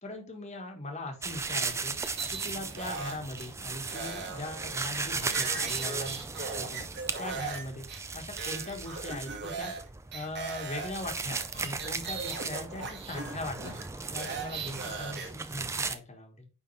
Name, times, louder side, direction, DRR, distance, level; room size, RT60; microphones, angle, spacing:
voice 1, 0.0-2.0 2.3-6.2 6.6-6.8 7.2-7.9 8.1-9.7 10.1-13.8 14.1-16.5, left 2 dB, 30° left, 3 dB, 1.3 m, -40 dB
sound 1, 1.2-16.0, right 4 dB, 15° right, 0.4 m, -36 dB
sound 2, 2.0-3.5 3.8-7.6 7.9-8.0 8.4-9.8 10.1-15.3, right 4 dB, 50° right, 1.9 m, -39 dB
9.4 x 3.6 x 3.2 m, 0.34 s
head